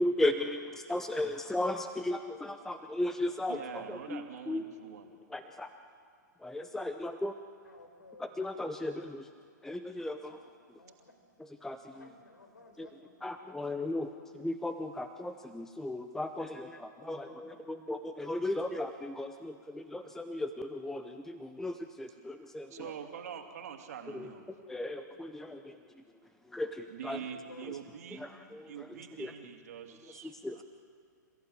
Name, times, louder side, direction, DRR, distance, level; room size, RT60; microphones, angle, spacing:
voice 1, 0.0-4.8 5.3-5.7 6.4-7.3 8.2-9.3 9.6-10.4 11.6-11.9 12.8-12.9 13.2-22.8 24.1-24.3 24.7-26.0 26.4-27.2 28.1-29.3 30.1-30.6, left 1 dB, 5° left, 9 dB, 0.8 m, -36 dB
voice 2, 3.5-5.1 22.7-24.4 26.9-28.2 28.7-30.6, right 8 dB, 55° right, 4 dB, 2.7 m, -44 dB
voice 3, 7.6-8.3 10.3-10.5 10.8-11.1 11.9-13.6 13.9-14.3 15.0-15.1 17.0-17.7 22.7-23.7 24.0-24.7 27.2-27.7, left 3 dB, 75° left, 5 dB, 4.6 m, -56 dB
28.5 x 15.0 x 8.8 m, 2.2 s
figure-of-eight pair, 110°, 10 cm